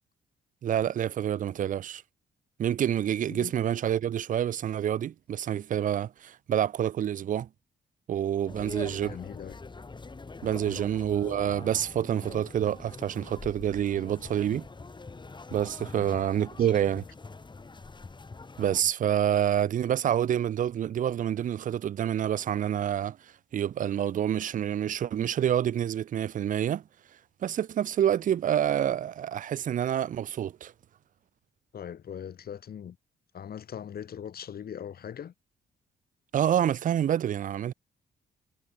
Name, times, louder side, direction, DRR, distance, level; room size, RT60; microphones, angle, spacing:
voice 1, 0.6-2.0 2.6-7.5 8.1-9.2 10.4-14.7 15.5-17.0 18.6-23.2 23.5-26.8 27.4-30.7 36.3-37.7, right 10 dB, 50° right, 0.5 m, -27 dB
sound 1, 8.5-18.8, left 3 dB, 25° left, 5.9 m, -44 dB
voice 2, 8.9-9.6 10.7-10.8 15.9-16.2 16.6-16.7 16.9-17.0 31.7-33.0 33.3-35.3, left 8 dB, 60° left, 5.0 m, -41 dB
cardioid pair, 85°, 17 cm